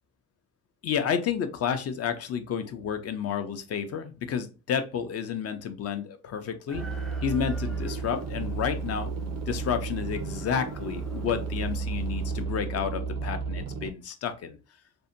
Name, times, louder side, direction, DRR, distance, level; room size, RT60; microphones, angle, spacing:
voice 1, 0.8-6.8 7.2-9.1 9.5-14.6, left 7 dB, 55° left, 8 dB, 0.5 m, -31 dB
Chicken rooster, 6.7-12.4, right 1 dB, 5° left, 0.4 m, -48 dB
sound 1, 6.7-13.9, right 4 dB, 55° right, 0.4 m, -33 dB
2.6 x 2.1 x 2.5 m, 0.32 s
cardioid pair, 90°, 30 cm